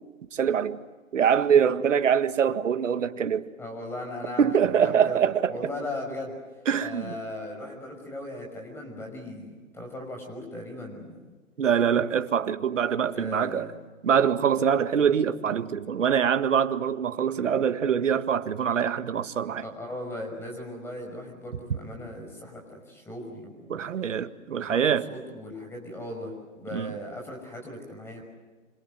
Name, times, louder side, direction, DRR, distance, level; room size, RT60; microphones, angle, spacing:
voice 1, 0.3-0.8 1.1-3.5 4.4-5.6 6.7-7.2 11.6-13.7 14.0-19.6 23.7-25.1 26.7-26.9, right 8 dB, 65° right, 1.8 m, -24 dB
voice 2, 3.6-6.4 6.8-11.2 13.1-13.7 19.6-23.9 24.6-24.8 25.1-28.2, left 1 dB, 5° left, 5.7 m, -38 dB
27.0 x 26.5 x 7.8 m
hypercardioid pair, 155°, 40 cm